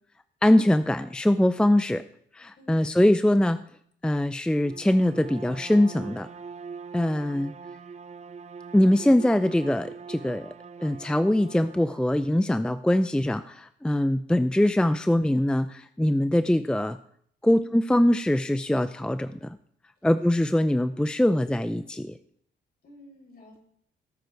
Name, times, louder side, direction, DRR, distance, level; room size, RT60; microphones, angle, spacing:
voice 1, 0.4-2.0 2.3-3.6 4.0-6.3 6.9-7.5 8.7-10.5 10.8-17.0 17.4-19.6 20.0-22.2, left 1 dB, 5° left, 11 dB, 0.5 m, -22 dB
Bowed string instrument, 4.6-12.1, right 5 dB, 35° right, 0.7 m, -42 dB
voice 2, 17.4-17.8 20.0-20.6 22.8-23.6, left 1 dB, 50° left, -1 dB, 7.0 m, -52 dB
18.0 x 7.9 x 4.7 m, 0.66 s
cardioid pair, 90°, 20 cm